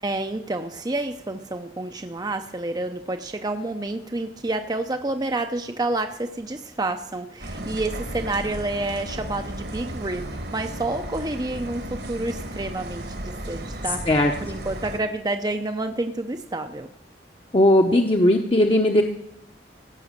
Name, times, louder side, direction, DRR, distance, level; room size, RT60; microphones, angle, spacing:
voice 1, 0.0-10.2 10.5-16.9, right 2 dB, 20° right, 6 dB, 0.6 m, -29 dB
sound 1, 7.4-15.0, right 1 dB, 60° right, 1.6 m, -34 dB
voice 2, 17.5-19.0, left 1 dB, 30° left, 2 dB, 0.9 m, -17 dB
16.5 x 6.2 x 7.4 m, 0.79 s
head